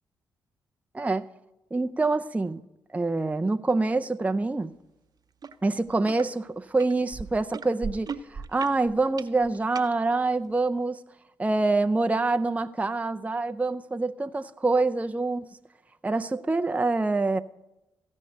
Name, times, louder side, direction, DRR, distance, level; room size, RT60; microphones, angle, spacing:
voice 1, 1.7-2.6 2.9-4.7 5.6-11.0 11.4-15.5 16.0-17.4, right 3 dB, 15° right, 8 dB, 0.5 m, -26 dB
sound 1, 5.4-5.6 5.9-6.3 6.8-9.9 10.6-10.7, right 5 dB, 45° right, 0.8 m, -37 dB
15.5 x 5.4 x 8.6 m, 0.97 s
supercardioid pair, 50°, 9 cm